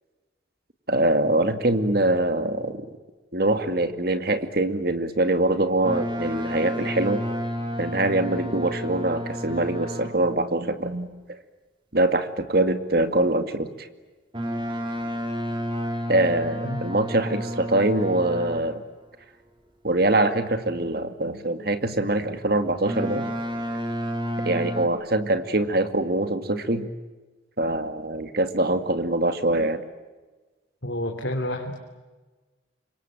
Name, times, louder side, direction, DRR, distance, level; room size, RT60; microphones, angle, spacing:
voice 1, 0.9-2.8 3.3-7.3 7.8-11.4 11.9-13.9 16.1-18.8 19.8-23.3 24.4-26.9 27.6-29.8, right 2 dB, 50° right, 8 dB, 2.2 m, -24 dB
Boat Water vehicle, 5.8-10.4 14.3-18.9 22.8-24.9, equal, 25° right, 3.3 m, -31 dB
voice 2, 30.8-31.8, left 1 dB, 70° left, 2 dB, 3.1 m, -29 dB
27.0 x 24.0 x 9.1 m, 1.3 s
head